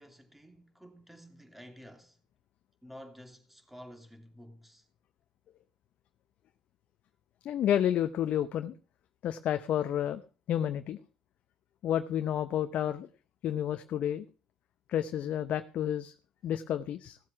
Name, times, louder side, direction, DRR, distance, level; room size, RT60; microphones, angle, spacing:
voice 1, 0.0-2.2 2.8-4.9, equal, 5° right, 2.7 m, -51 dB
voice 2, 7.4-8.8 9.2-10.2 10.5-11.0 11.8-13.1 13.4-14.2 14.9-16.1 16.4-17.2, left 10 dB, 70° left, 0.7 m, -30 dB
16.0 x 7.6 x 5.9 m
supercardioid pair, 65°, 2 cm